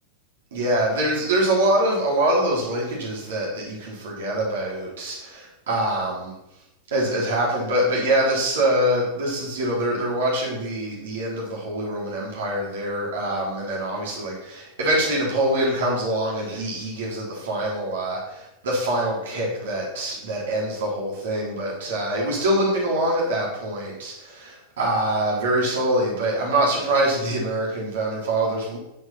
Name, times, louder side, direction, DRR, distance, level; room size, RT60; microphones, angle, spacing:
voice 1, 0.5-6.4 6.9-28.8, right 1 dB, 60° right, -4 dB, 3.8 m, -24 dB
9.9 x 6.4 x 6.0 m, 0.90 s
figure-of-eight pair, 90°, 0 cm